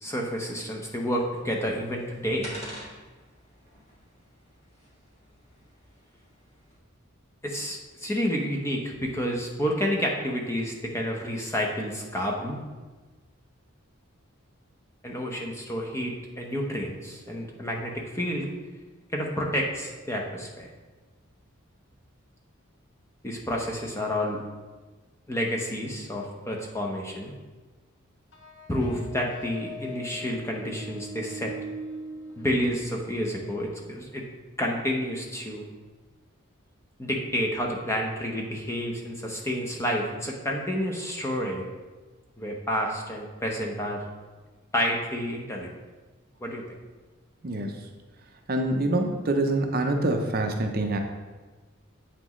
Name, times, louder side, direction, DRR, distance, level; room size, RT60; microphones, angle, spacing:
voice 1, 0.0-2.5 7.4-12.6 15.0-18.5 19.1-20.7 23.2-24.4 25.3-27.3 28.7-31.5 32.4-34.2 34.6-35.6 37.0-41.6 42.4-44.0 44.7-45.7 46.4-46.6, equal, 15° left, 0 dB, 0.8 m, -29 dB
sound 1, 1.3-6.8, equal, 30° left, 1.7 m, -47 dB
sound 2, 28.3-33.5, right 1 dB, 55° left, 0.7 m, -41 dB
voice 2, 47.4-47.8 48.5-51.0, right 2 dB, 45° right, 4 dB, 0.6 m, -25 dB
8.2 x 5.9 x 3.1 m, 1.3 s
head